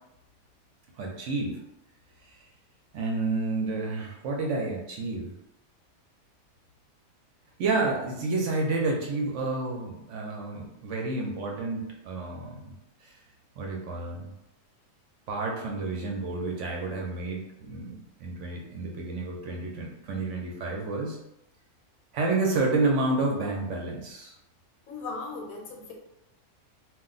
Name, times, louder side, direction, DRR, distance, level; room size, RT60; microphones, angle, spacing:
voice 1, 1.0-1.6 2.9-5.3 7.6-12.7 13.0-13.1 13.6-14.3 15.3-21.2 22.1-24.3, right 3 dB, 65° right, 0 dB, 0.8 m, -30 dB
voice 2, 24.9-25.9, left 3 dB, 80° left, 1 dB, 1.1 m, -37 dB
2.3 x 2.1 x 3.8 m, 0.86 s
omnidirectional pair, 1.5 m